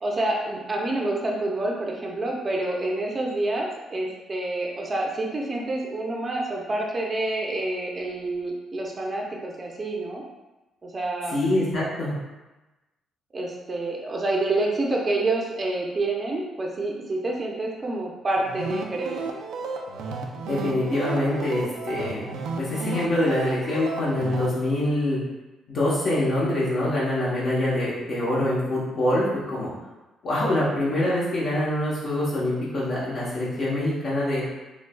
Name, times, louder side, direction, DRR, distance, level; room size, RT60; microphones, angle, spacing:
voice 1, 0.0-10.2 10.8-11.3 13.3-19.2, right 2 dB, 35° right, -1 dB, 0.5 m, -28 dB
voice 2, 11.3-12.1 20.4-25.2 25.7-29.7 30.2-34.4, left 1 dB, 60° left, -8 dB, 1.0 m, -25 dB
sound 1, 18.4-24.5, right 4 dB, 85° right, 0.4 m, -33 dB
4.4 x 2.2 x 2.2 m, 1.1 s
cardioid pair, 90°, 0 cm